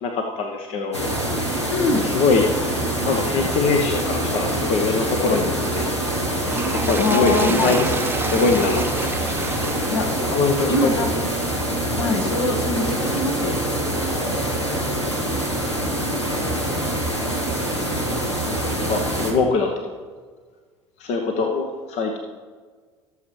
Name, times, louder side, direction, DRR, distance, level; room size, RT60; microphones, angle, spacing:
voice 1, 0.0-1.0 2.0-2.5 3.0-5.9 6.8-8.8 9.1-9.6 10.3-10.9 18.4-19.9 21.0-22.2, left 4 dB, 50° left, 3 dB, 0.9 m, -23 dB
sound 1, 0.9-19.3, right 1 dB, 90° left, 1.3 m, -25 dB
voice 2, 1.7-2.1 7.0-7.8 9.9-10.1 10.7-11.2 11.9-13.6, left 2 dB, 65° left, 3 dB, 1.4 m, -23 dB
Toilet flush, 6.4-11.9 12.5-12.7, right 4 dB, 15° right, 0.7 m, -31 dB
17.0 x 7.2 x 3.2 m, 1.5 s
figure-of-eight pair, 65°, 14 cm